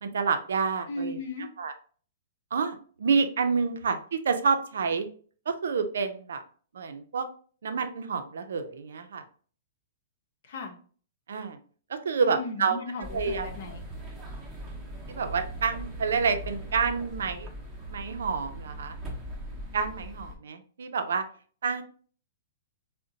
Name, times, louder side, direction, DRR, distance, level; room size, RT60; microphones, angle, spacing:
voice 1, 0.0-1.2 1.6-1.7 2.5-5.1 5.5-6.4 6.7-7.3 7.6-9.2 11.3-11.6 11.9-12.8 13.1-13.5 15.1-17.5 17.9-19.0 19.7-21.2 21.6-21.8, right 5 dB, 80° right, 8 dB, 0.5 m, -28 dB
voice 2, 0.9-1.5 10.4-10.7 12.2-13.8, left 2 dB, 60° left, 3 dB, 0.8 m, -36 dB
sound 1, 13.0-20.4, right 1 dB, 15° right, 0.8 m, -40 dB
3.7 x 2.1 x 2.6 m, 0.44 s
hypercardioid pair, 135°, 0 cm